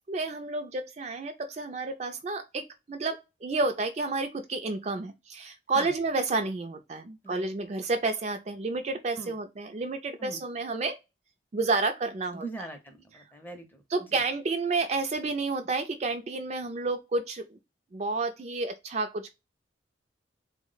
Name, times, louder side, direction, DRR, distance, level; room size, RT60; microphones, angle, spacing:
voice 1, 0.0-11.0 11.5-12.7 13.9-17.6 17.9-19.3, right 3 dB, 35° right, 0.3 m, -30 dB
voice 2, 12.3-13.8 14.1-14.2, right 2 dB, 10° left, 0.6 m, -41 dB
3.5 x 2.1 x 3.8 m
head